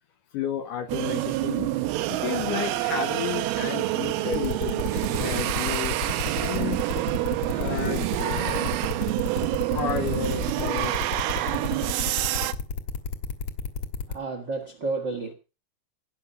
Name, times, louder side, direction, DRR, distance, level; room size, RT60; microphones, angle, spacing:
voice 1, 0.3-1.7 2.1-6.0 6.3-6.8 7.5-8.8 9.7-11.4, left 9 dB, 70° left, 2.1 m, -32 dB
sound 1, 0.9-12.5, right 15 dB, 80° right, 2.6 m, -27 dB
sound 2, 4.3-14.1, left 5 dB, 55° left, 2.2 m, -31 dB
voice 2, 14.1-15.3, right 3 dB, 55° right, 1.3 m, -31 dB
17.0 x 6.6 x 5.5 m
omnidirectional pair, 4.6 m